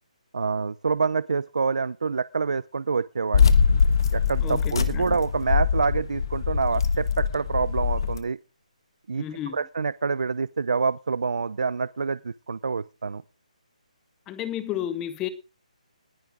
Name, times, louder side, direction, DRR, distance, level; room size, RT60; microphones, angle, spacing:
voice 1, 0.3-3.5 4.1-8.4 9.1-9.3 9.5-13.2, right 5 dB, 65° right, 0.6 m, -26 dB
sound 1, 3.3-8.2, left 6 dB, 35° left, 1.3 m, -23 dB
voice 2, 4.4-5.0 9.2-9.6 14.3-15.3, left 11 dB, 10° left, 0.6 m, -32 dB
20.0 x 10.5 x 3.8 m
hypercardioid pair, 180°, 4 cm